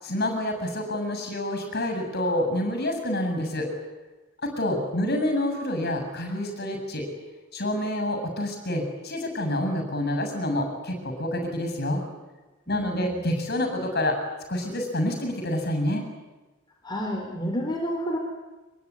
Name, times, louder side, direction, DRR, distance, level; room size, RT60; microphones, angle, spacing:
voice 1, 0.0-3.7 4.4-7.0 7.5-12.0 12.7-14.2 14.5-16.0, left 1 dB, 50° left, 5 dB, 7.5 m, -27 dB
voice 2, 12.7-13.2 16.8-18.2, equal, 20° left, 1 dB, 4.0 m, -30 dB
25.0 x 23.0 x 9.9 m, 1.1 s
head